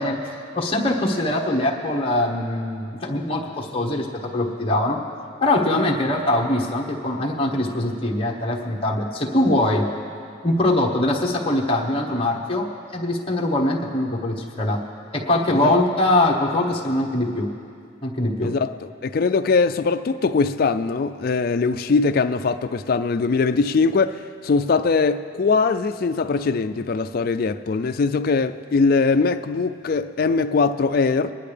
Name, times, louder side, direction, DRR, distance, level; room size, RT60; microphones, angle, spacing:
voice 1, 0.0-5.0 5.4-9.9 10.4-14.8 15.1-17.5 18.0-18.5, left 1 dB, 25° left, 1.1 m, -22 dB
voice 2, 18.4-31.3, left 4 dB, 45° left, 0.3 m, -21 dB
22.0 x 10.5 x 3.4 m
head